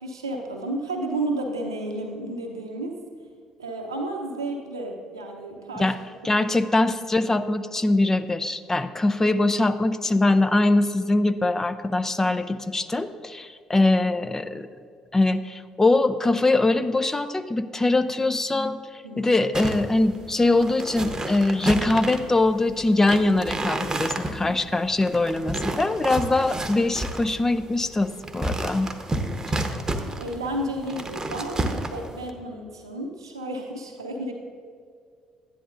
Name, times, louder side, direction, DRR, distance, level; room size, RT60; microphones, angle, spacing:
voice 1, 0.0-3.0 3.6-5.9 6.2-6.5 19.0-19.4 30.0-34.3, right 1 dB, 90° right, 2 dB, 0.7 m, -32 dB
voice 2, 6.2-14.7 15.1-28.9, left 2 dB, 20° left, 11 dB, 0.5 m, -22 dB
sound 1, 19.5-32.3, right 2 dB, 25° right, 0.9 m, -31 dB
11.5 x 10.0 x 2.5 m, 2.2 s
hypercardioid pair, 50°, 2 cm